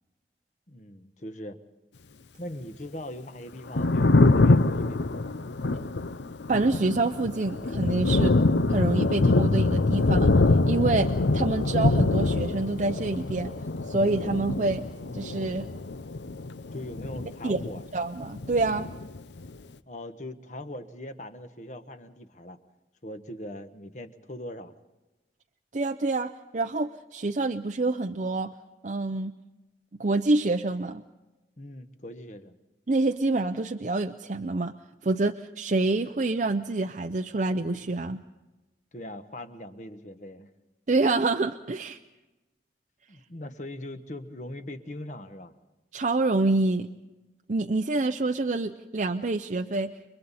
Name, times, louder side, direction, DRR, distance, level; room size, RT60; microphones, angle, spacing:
voice 1, 0.7-1.6 2.4-5.4 16.7-17.9 19.9-22.6 23.0-24.7 31.6-32.6 38.9-40.5 43.1-45.5, left 1 dB, 45° left, 9 dB, 1.2 m, -40 dB
Thunder, 3.5-18.0 18.2-19.5, left 2 dB, 85° left, 0.7 m, -24 dB
voice 2, 6.5-8.3 8.7-10.3 10.7-13.5 13.9-14.8 15.1-15.7 17.4-17.6 17.9-18.9 25.7-28.5 28.8-29.3 30.0-31.0 32.9-34.7 35.0-38.2 40.9-42.0 45.9-46.9 47.5-49.9, right 2 dB, 45° right, 5 dB, 0.6 m, -27 dB
29.5 x 22.5 x 4.2 m, 1.1 s
head